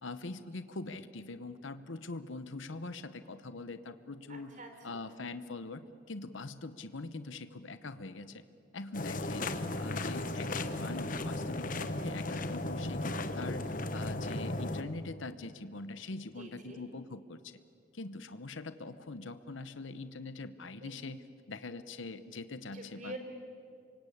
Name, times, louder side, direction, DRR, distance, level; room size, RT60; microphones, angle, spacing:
voice 1, 0.0-4.5 4.8-8.4 8.7-17.5 17.9-21.2 21.5-23.2, left 3 dB, 75° left, 12 dB, 1.0 m, -43 dB
voice 2, 4.3-5.0 16.4-16.8 20.8-21.0 22.7-23.2, right 2 dB, 40° right, 4 dB, 4.0 m, -46 dB
sound 1, 8.9-14.8, left 2 dB, 45° left, 1.2 m, -35 dB
27.5 x 24.5 x 8.6 m, 2.4 s
head